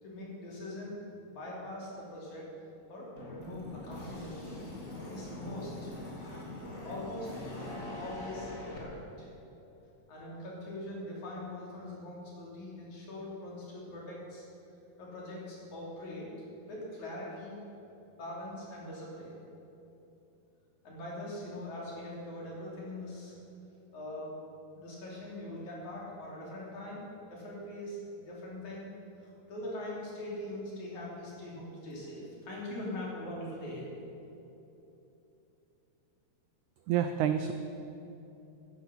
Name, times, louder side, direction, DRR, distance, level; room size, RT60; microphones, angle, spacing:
voice 1, 0.0-2.5 2.9-4.6 5.1-5.9 6.6-7.4 8.0-9.3 10.1-14.4 15.0-16.3 16.7-17.6 18.1-19.4 20.8-23.4 23.9-24.4 24.8-28.9 29.2-33.9, left 1 dB, 55° left, -5 dB, 4.4 m, -42 dB
sound 1, 3.2-8.8, left 2 dB, 25° left, 2.2 m, -42 dB
voice 2, 36.9-37.5, right 9 dB, 85° right, 8 dB, 1.7 m, -28 dB
15.0 x 10.5 x 5.8 m, 2.9 s
omnidirectional pair, 4.0 m